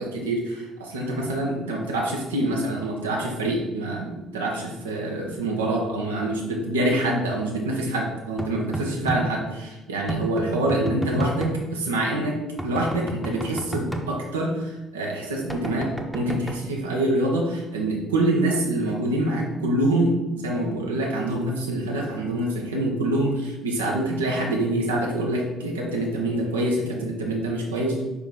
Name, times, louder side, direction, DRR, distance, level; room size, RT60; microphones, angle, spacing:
voice 1, 0.0-28.0, right 1 dB, 80° right, -1 dB, 1.2 m, -26 dB
sound 1, 8.4-9.2 10.1-11.6 12.6-14.0 15.5-16.6, right 1 dB, 5° right, 0.9 m, -30 dB
5.6 x 5.5 x 3.9 m, 1.1 s
figure-of-eight pair, 50°, 0 cm